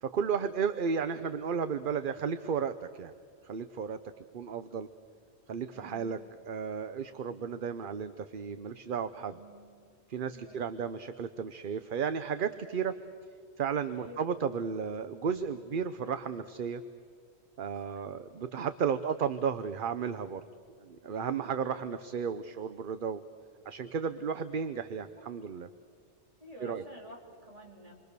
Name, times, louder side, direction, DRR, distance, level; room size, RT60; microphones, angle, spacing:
voice 1, 0.0-3.1 3.4-4.0 4.3-4.9 5.5-6.2 6.5-9.4 10.1-12.9 13.6-16.8 17.6-20.4 20.8-23.2 23.7-25.7 26.6-26.8, right 6 dB, 55° right, 11 dB, 0.9 m, -33 dB
voice 2, 5.7-6.2 9.3-9.7 10.3-10.6 13.9-14.3 17.8-18.0 26.4-27.9, equal, 30° right, -2 dB, 4.3 m, -50 dB
28.0 x 23.0 x 6.8 m, 2.2 s
omnidirectional pair, 1.2 m